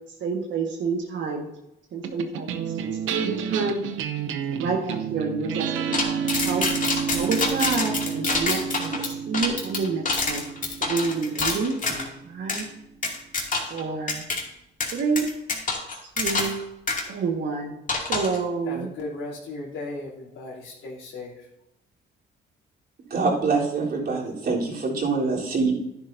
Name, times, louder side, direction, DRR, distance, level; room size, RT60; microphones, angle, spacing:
voice 1, 0.2-1.5 1.9-3.8 4.5-6.7 7.1-10.4 10.8-12.7 13.7-14.2 14.9-15.3 16.0-16.6 17.1-18.9, right 4 dB, 70° right, 0 dB, 1.6 m, -29 dB
sound 1, 2.0-12.6, right 7 dB, 85° right, 0.9 m, -31 dB
sound 2, 5.9-12.1 12.5-12.6 13.0-13.8 14.1-14.4 14.8-16.6 16.9-17.0 17.9-18.4, left 3 dB, 40° left, 2.5 m, -26 dB
voice 2, 18.6-21.5, left 2 dB, 75° left, -6 dB, 3.2 m, -36 dB
voice 3, 23.1-25.7, right 4 dB, 50° right, -4 dB, 3.7 m, -24 dB
10.5 x 10.5 x 2.7 m, 0.86 s
cardioid pair, 90°, 20 cm